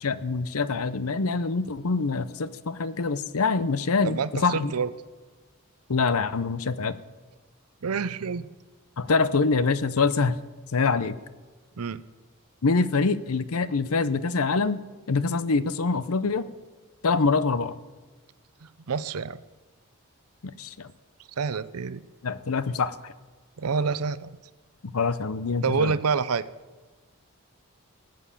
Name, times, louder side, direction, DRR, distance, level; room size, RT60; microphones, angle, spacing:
voice 1, 0.0-4.7 5.9-7.0 9.0-10.4 10.7-11.1 12.6-14.8 15.1-16.5 17.0-17.8 20.6-20.9 22.2-23.1 24.8-25.9, left 4 dB, 75° left, 14 dB, 0.7 m, -25 dB
voice 2, 4.0-4.9 7.8-8.5 11.8-12.0 18.6-19.4 21.4-22.0 23.6-24.3 25.6-26.5, right 5 dB, 85° right, 16 dB, 0.6 m, -27 dB
19.0 x 7.8 x 6.9 m, 1.3 s
head